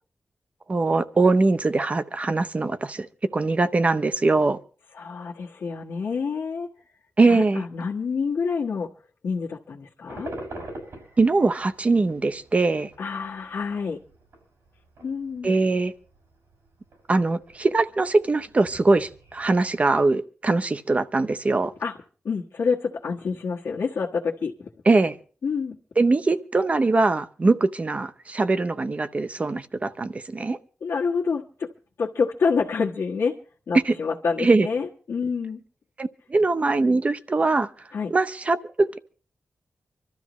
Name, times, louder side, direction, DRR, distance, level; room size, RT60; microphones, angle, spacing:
voice 1, 0.7-3.1 3.3-4.6 7.2-7.6 11.2-12.9 15.4-15.9 17.1-21.7 24.9-25.2 26.0-30.6 33.9-34.0 34.4-34.7 36.0-37.7 38.1-39.0, right 3 dB, 30° right, 12 dB, 0.7 m, -22 dB
voice 2, 4.9-6.7 7.3-8.9 9.2-10.3 13.0-14.0 15.0-15.5 21.8-22.0 22.2-24.5 25.4-25.8 30.8-31.7 32.0-33.3 33.7-35.6 37.9-38.1, left 5 dB, 75° left, -4 dB, 1.4 m, -27 dB
sound 1, 10.1-20.0, right 1 dB, 80° right, 6.2 m, -45 dB
25.5 x 13.0 x 3.1 m, 0.41 s
wide cardioid pair, 160°, 5 cm